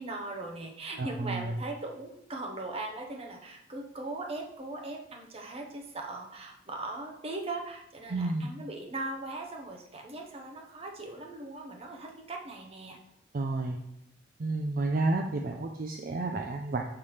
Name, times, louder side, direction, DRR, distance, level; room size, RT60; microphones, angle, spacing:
voice 1, 0.0-13.0, right 2 dB, 30° right, 2 dB, 0.8 m, -39 dB
voice 2, 1.0-1.6 8.1-8.5 13.3-13.8 14.4-16.8, right 2 dB, 45° right, 3 dB, 0.4 m, -31 dB
6.7 x 3.2 x 5.6 m, 0.81 s
head